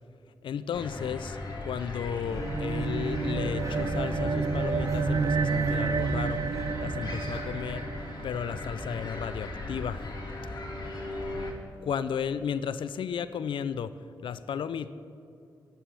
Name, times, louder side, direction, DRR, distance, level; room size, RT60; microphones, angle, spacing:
voice 1, 0.4-1.4 1.6-6.4 6.8-7.9 8.2-10.0 11.8-13.9 14.2-14.9, left 7 dB, 75° left, 13 dB, 0.5 m, -33 dB
sound 1, 0.7-11.5, left 2 dB, 55° left, 2.9 m, -37 dB
sound 2, 2.3-7.4, right 1 dB, 35° right, 2.0 m, -39 dB
sound 3, 2.3-8.9, right 5 dB, 55° right, 0.5 m, -30 dB
10.0 x 7.6 x 9.5 m, 2.5 s
supercardioid pair, 40°, 9 cm